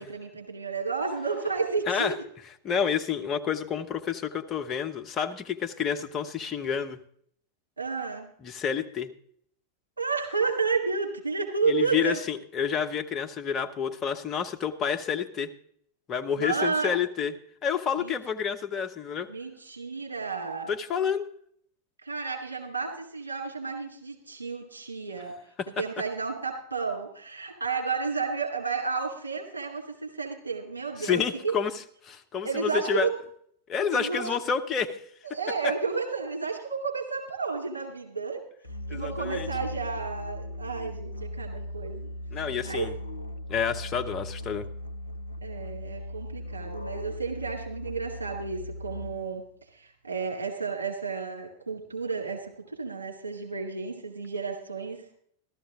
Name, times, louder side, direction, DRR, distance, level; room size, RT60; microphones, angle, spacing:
voice 1, 0.0-2.2 7.8-8.3 10.0-12.2 16.3-16.9 18.0-18.2 19.3-20.7 22.0-25.3 25.8-31.5 32.4-33.1 33.9-34.2 35.2-38.4 38.9-42.1 42.6-42.9 45.4-49.4 49.7-55.0, right 4 dB, 75° right, 0 dB, 2.5 m, -31 dB
voice 2, 2.6-7.0 8.4-9.1 11.7-15.5 16.1-17.3 17.6-19.3 20.7-21.3 25.6-25.7 31.0-33.1 33.7-35.0 38.9-39.5 42.3-42.9 43.5-44.6, left 7 dB, 25° left, 5 dB, 1.1 m, -29 dB
Musical instrument, 38.6-49.4, left 1 dB, 85° left, 0.7 m, -38 dB
14.5 x 13.0 x 3.7 m, 0.64 s
figure-of-eight pair, 90°, 0 cm